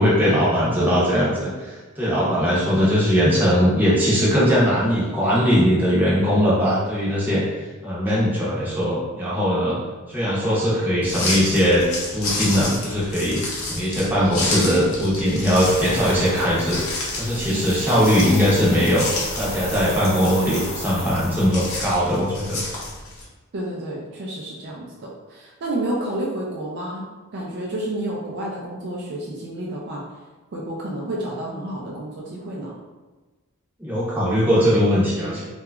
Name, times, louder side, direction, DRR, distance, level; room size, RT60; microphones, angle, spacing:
voice 1, 0.0-7.4 7.8-9.8 10.1-11.8 12.1-13.4 13.7-16.8 17.2-19.1 19.4-22.6 33.8-35.5, equal, 10° right, -8 dB, 0.7 m, -20 dB
sound 1, 11.0-23.2, left 2 dB, 65° left, 0.6 m, -31 dB
sound 2, 15.4-22.0, left 1 dB, 30° left, 0.8 m, -35 dB
voice 2, 23.5-27.1 27.3-30.0 30.5-32.7, right 1 dB, 50° right, -3 dB, 0.3 m, -30 dB
2.8 x 2.2 x 2.3 m, 1.2 s
head